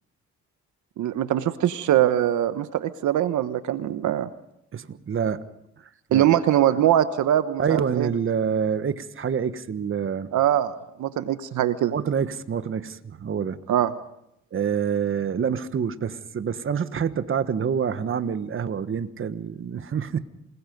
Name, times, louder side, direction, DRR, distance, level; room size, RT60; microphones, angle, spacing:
voice 1, 1.0-4.3 6.1-8.1 10.3-10.7 11.0-11.9 13.7-13.9, right 11 dB, 75° right, 12 dB, 1.1 m, -22 dB
voice 2, 4.7-5.4 5.8-6.3 7.6-10.3 11.9-13.6 14.5-20.2, right 7 dB, 45° right, 12 dB, 1.3 m, -27 dB
28.0 x 20.5 x 5.3 m, 0.80 s
cardioid pair, 90°, 30 cm